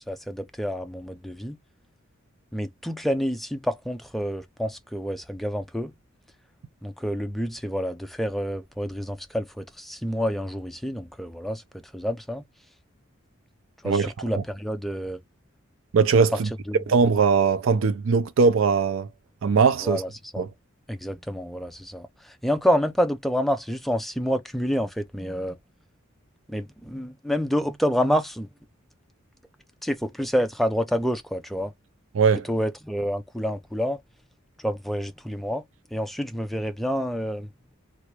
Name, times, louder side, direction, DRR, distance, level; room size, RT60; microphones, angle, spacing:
voice 1, 0.0-1.6 2.5-5.9 6.8-11.6 11.9-12.4 13.8-15.2 16.7-16.8 19.8-20.4 20.9-25.6 26.5-28.5 29.8-31.7 32.5-34.0 34.6-35.6 35.9-37.5, equal, ahead, 0.4 m, -28 dB
voice 2, 13.8-14.4 15.9-16.5 16.9-19.1 19.4-20.0 20.4-20.5 32.1-32.5, right 5 dB, 70° right, 0.4 m, -20 dB
3.4 x 2.4 x 2.9 m
head